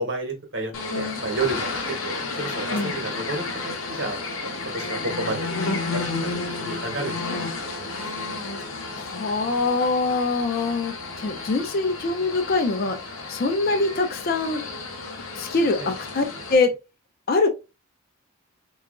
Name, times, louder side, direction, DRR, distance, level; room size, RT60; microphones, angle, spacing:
voice 1, 0.0-7.9 8.3-8.4 15.8-15.9, right 2 dB, 60° right, 1.0 m, -32 dB
sound 1, 0.7-16.6, left 3 dB, 70° left, 0.7 m, -32 dB
voice 2, 8.6-13.0 13.3-14.6 15.4-16.2 16.5-16.8 17.3-17.5, left 3 dB, 45° left, 0.4 m, -24 dB
3.8 x 2.3 x 2.3 m
head